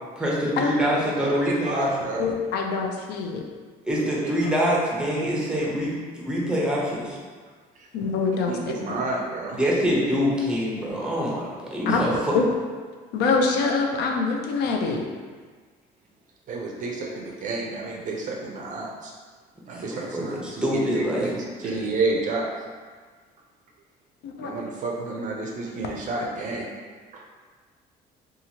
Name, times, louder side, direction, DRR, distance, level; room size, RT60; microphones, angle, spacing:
voice 1, 0.2-2.1 3.8-7.2 9.6-12.3 19.7-21.3, equal, 5° right, -5 dB, 0.7 m, -25 dB
voice 2, 1.2-2.3 4.0-4.6 5.6-5.7 7.8-7.9 8.5-9.6 16.5-19.1 19.7-22.5 24.4-26.6 27.1-27.2, right 3 dB, 50° right, -1 dB, 0.4 m, -30 dB
voice 3, 2.2-3.4 7.9-8.7 11.9-12.0 12.3-12.4 13.1-15.1 24.2-24.6, left 4 dB, 80° left, 2 dB, 0.4 m, -24 dB
2.8 x 2.4 x 2.8 m, 1.5 s
cardioid pair, 110°, 17 cm